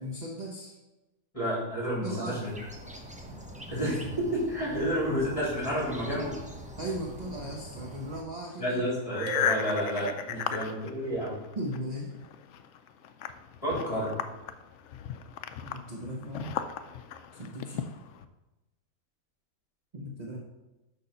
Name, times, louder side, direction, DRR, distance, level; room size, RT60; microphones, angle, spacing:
voice 1, 0.0-0.8 2.0-2.4 6.8-8.8 11.6-12.2 15.6-16.6 17.3-18.0 19.9-20.4, right 1 dB, 35° right, -1 dB, 0.9 m, -37 dB
voice 2, 1.3-2.5 3.7-6.4 8.6-11.4 13.6-14.1, equal, 25° left, -6 dB, 3.4 m, -30 dB
sound 1, 2.4-8.2, equal, 5° right, 0.7 m, -44 dB
sound 2, 8.5-11.8 12.1-18.2, left 8 dB, 65° left, 0.8 m, -36 dB
sound 3, 9.3-10.8, right 5 dB, 75° right, 1.2 m, -41 dB
6.6 x 5.7 x 5.5 m, 1.0 s
omnidirectional pair, 1.5 m